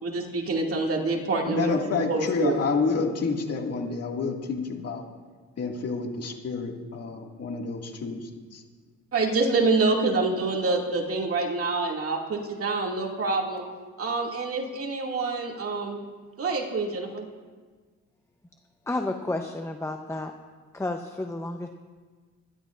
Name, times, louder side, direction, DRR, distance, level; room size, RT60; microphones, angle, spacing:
voice 1, 0.0-2.6 9.1-13.7 14.0-16.0 16.4-17.3, right 3 dB, 50° right, 0 dB, 2.4 m, -26 dB
voice 2, 1.5-5.1 5.6-8.6, left 4 dB, 55° left, 1 dB, 2.2 m, -29 dB
voice 3, 18.9-20.3 20.7-21.7, left 2 dB, 10° left, 5 dB, 0.8 m, -31 dB
25.0 x 11.5 x 2.6 m, 1.4 s
cardioid pair, 90°, 30 cm